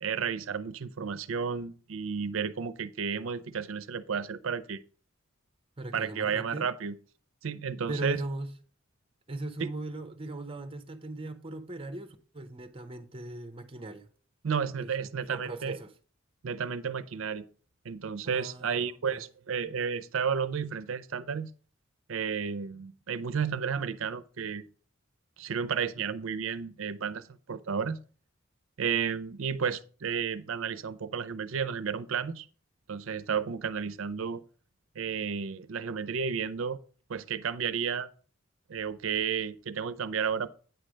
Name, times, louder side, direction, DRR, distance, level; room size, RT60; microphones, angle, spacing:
voice 1, 0.0-4.8 5.9-7.0 7.4-8.2 9.6-9.7 14.4-15.8 16.4-17.4 17.8-21.5 22.1-24.6 25.4-28.0 28.8-32.5 32.9-34.4 35.0-36.8 37.1-38.1 38.7-40.5, right 6 dB, 75° right, 0.5 m, -32 dB
voice 2, 5.8-6.7 7.9-8.5 9.3-14.1 14.8-14.9 15.3-15.9 18.2-19.2, right 2 dB, 25° right, 0.8 m, -39 dB
9.2 x 3.3 x 6.3 m
head